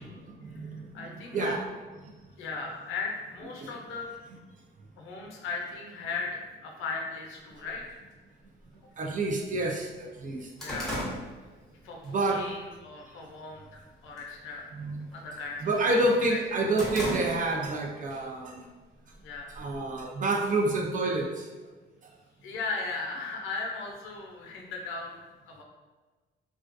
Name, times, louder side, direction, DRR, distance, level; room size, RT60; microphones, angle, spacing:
voice 1, 0.0-0.8 1.3-1.7 3.6-3.7 9.0-10.5 12.0-12.4 14.7-15.0 15.6-18.7 19.5-21.5, right 2 dB, 40° right, 1 dB, 0.5 m, -28 dB
voice 2, 0.9-1.5 2.4-4.1 5.0-8.0 10.6-11.1 11.8-14.6 15.1-15.7 16.3-16.4 19.0-19.5 22.4-25.1 25.4-25.6, left 4 dB, 90° left, 0 dB, 0.5 m, -37 dB
sound 1, 7.7-7.8 8.7-8.8 9.3-9.4 9.7-12.1 12.5-12.8 13.3-13.8 14.0-14.4 14.7-15.9 16.3-17.8 18.1-18.2 19.1-20.0, equal, ahead, 0.8 m, -37 dB
2.3 x 2.2 x 2.5 m, 1.3 s
cardioid pair, 90°, 20 cm